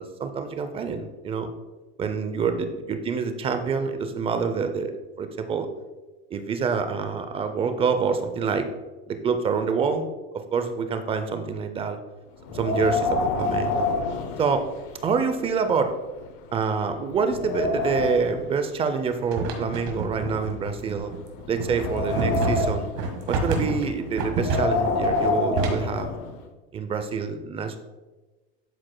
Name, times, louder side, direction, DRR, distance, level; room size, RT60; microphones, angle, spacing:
voice 1, 0.0-1.5 2.0-4.9 5.2-5.7 6.3-8.7 9.1-10.0 10.3-12.0 12.5-13.9 14.4-14.7 15.0-16.0 16.5-21.1 21.5-22.9 23.3-26.1 26.7-27.8, right 5 dB, 20° right, 8 dB, 0.5 m, -26 dB
Wind, 12.5-15.1 15.4-15.5 16.2-16.3 16.8-18.4 19.3-20.8 21.4-23.0 24.2-26.4, left 3 dB, 50° left, 0.7 m, -27 dB
sound 1, 19.3-26.1, right 3 dB, 55° right, 1.6 m, -29 dB
12.0 x 4.7 x 2.2 m, 1.2 s
supercardioid pair, 135°, 31 cm